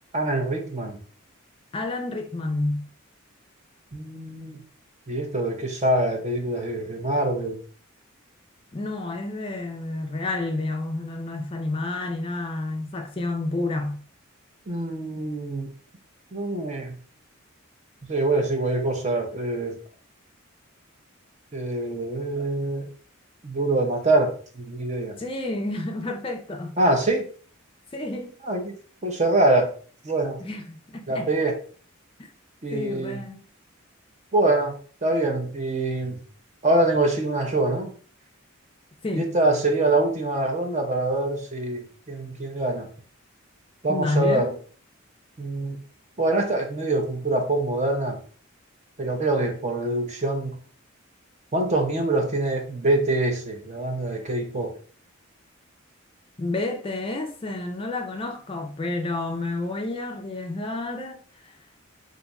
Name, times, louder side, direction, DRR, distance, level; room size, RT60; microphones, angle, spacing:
voice 1, 0.1-1.0 3.9-4.6 5.1-7.6 14.7-15.7 16.3-17.0 18.1-19.7 21.5-22.9 23.4-25.2 26.8-27.3 28.4-28.8 29.0-29.7 30.0-30.4 31.1-31.6 32.6-33.2 34.3-36.2 36.6-37.9 39.1-42.9 43.8-44.5 45.4-45.8 46.2-48.2 49.0-50.6 51.5-54.8, right 2 dB, 35° right, 0.6 m, -24 dB
voice 2, 1.7-2.9 8.7-14.0 25.2-26.7 27.9-28.3 30.4-31.3 32.7-33.4 39.0-39.3 43.9-44.5 56.4-61.5, left 2 dB, 25° left, 0.4 m, -30 dB
2.5 x 2.4 x 4.1 m
head